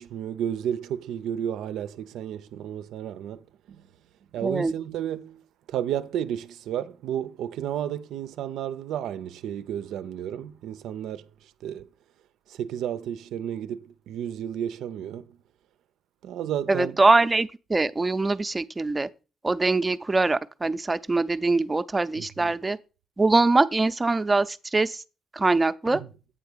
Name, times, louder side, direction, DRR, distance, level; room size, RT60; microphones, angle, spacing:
voice 1, 0.0-3.9 4.3-11.9 12.5-15.4 16.2-17.0 22.2-22.6 25.8-26.1, right 10 dB, 85° right, 0.4 m, -32 dB
voice 2, 4.4-4.7 16.7-19.1 19.4-22.8 23.2-25.0 25.3-26.0, right 3 dB, 20° right, 0.5 m, -23 dB
8.6 x 3.5 x 6.6 m
cardioid pair, 90°, 0 cm